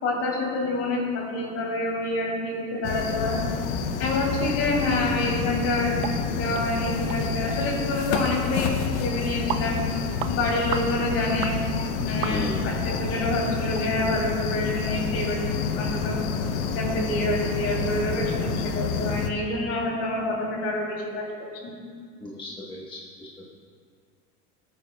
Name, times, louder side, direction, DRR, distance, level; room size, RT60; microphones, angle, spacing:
voice 1, 0.0-3.4 4.0-9.8 10.3-11.6 12.0-15.4 15.7-16.2 16.7-21.2 21.6-21.7, left 1 dB, 45° left, -2 dB, 3.0 m, -27 dB
sound 1, 2.8-19.3, left 6 dB, 85° left, 0.9 m, -28 dB
sound 2, 6.0-6.2 6.5-6.7 7.1-7.2 7.5-7.6 8.1-8.3 8.8-8.9 9.5-9.7 10.2-10.3 10.7-10.9 11.4-11.6 12.2-12.7 13.1-13.2 13.7-13.9 14.3-14.4, right 11 dB, 65° right, 0.7 m, -33 dB
voice 2, 12.2-12.7 22.2-23.5, left 1 dB, 15° left, -5 dB, 1.2 m, -36 dB
17.5 x 9.1 x 2.3 m, 2.1 s
supercardioid pair, 120°, 34 cm